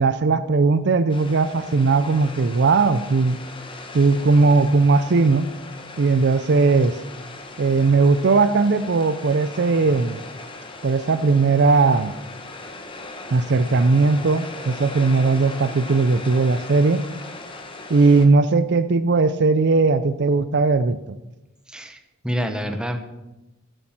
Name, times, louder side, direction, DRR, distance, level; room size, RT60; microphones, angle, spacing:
voice 1, 0.0-3.4 3.9-5.5 6.0-7.0 7.6-10.2 10.8-12.2 13.3-17.0 17.9-21.0, right 4 dB, 50° right, 13 dB, 0.4 m, -18 dB
sound 1, 1.1-18.3, left 2 dB, 20° left, 1.1 m, -38 dB
voice 2, 21.7-23.0, equal, 5° right, 6 dB, 0.9 m, -27 dB
12.0 x 8.0 x 5.9 m, 1.0 s
head